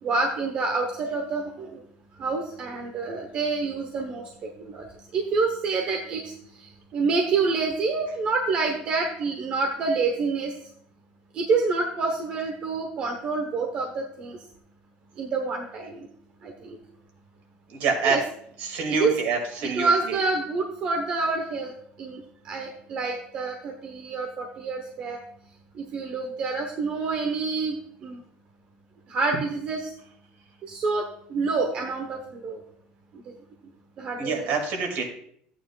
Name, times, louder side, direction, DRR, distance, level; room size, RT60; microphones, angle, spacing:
voice 1, 0.0-1.8 2.2-4.8 5.1-6.3 6.6-10.5 11.3-14.4 15.2-16.1 16.4-16.8 18.0-18.2 18.9-19.2 19.6-21.7 22.0-25.2 25.7-28.2 29.1-29.9 30.6-32.6 33.1-33.2 34.0-34.5, right 4 dB, 35° right, 2 dB, 1.1 m, -27 dB
voice 2, 17.7-18.2 18.6-20.2 34.2-35.1, right 4 dB, 60° right, 3 dB, 2.4 m, -26 dB
13.0 x 9.0 x 2.4 m, 0.66 s
cardioid pair, 170°, 3 cm